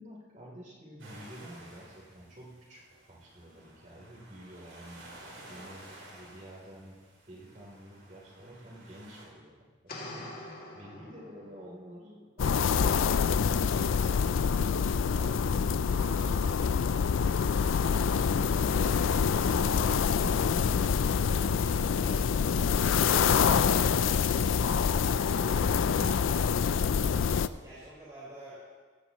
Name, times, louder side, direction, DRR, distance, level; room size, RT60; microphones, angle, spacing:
voice 1, 0.0-2.8 3.1-7.0 7.3-10.3 10.7-14.2, equal, 40° right, -3 dB, 3.3 m, -50 dB
sound 1, 1.0-9.3, right 1 dB, 75° right, 3.7 m, -53 dB
sound 2, 9.9-11.8, left 2 dB, 50° left, 2.3 m, -44 dB
sound 3, 12.4-27.5, left 6 dB, 80° left, 0.4 m, -26 dB
voice 2, 15.1-18.9 19.3-22.8 23.9-24.1 24.6-25.0 25.3-26.5 27.5-28.6, right 1 dB, 20° right, -10 dB, 4.6 m, -49 dB
17.0 x 15.0 x 3.0 m, 1.5 s
head